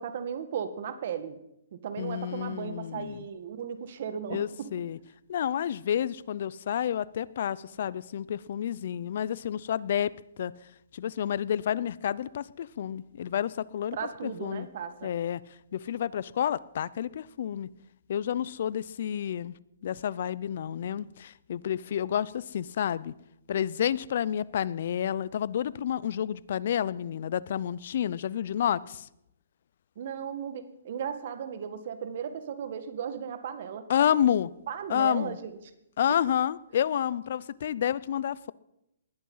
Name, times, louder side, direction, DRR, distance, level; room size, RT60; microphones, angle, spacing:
voice 1, 0.0-1.4 1.7-4.7 13.9-15.1 30.0-33.9 34.7-35.6, right 7 dB, 50° right, 11 dB, 1.9 m, -36 dB
voice 2, 2.0-3.2 4.3-5.0 5.3-10.1 10.4-10.5 10.9-14.0 14.2-14.7 15.0-15.4 15.7-17.7 18.1-19.6 19.8-23.1 23.5-29.1 33.9-34.5 34.9-35.4 36.0-38.5, left 9 dB, 55° left, 20 dB, 0.6 m, -29 dB
19.5 x 11.5 x 5.7 m, 0.82 s
hypercardioid pair, 155°, 0 cm